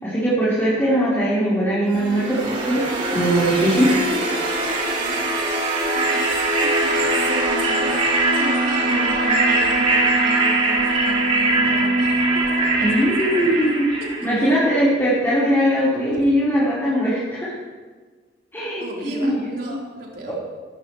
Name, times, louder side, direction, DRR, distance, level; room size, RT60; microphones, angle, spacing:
voice 1, 0.0-4.0 12.8-17.5 18.5-19.7 20.3-20.4, equal, 10° left, -11 dB, 4.6 m, -20 dB
sound 1, 2.0-14.9, right 2 dB, 45° right, 3.2 m, -21 dB
voice 2, 4.1-8.0 8.4-13.5 14.0-14.5 18.8-20.3, right 1 dB, 60° right, -4 dB, 4.3 m, -34 dB
20.5 x 15.5 x 3.3 m, 1.4 s
head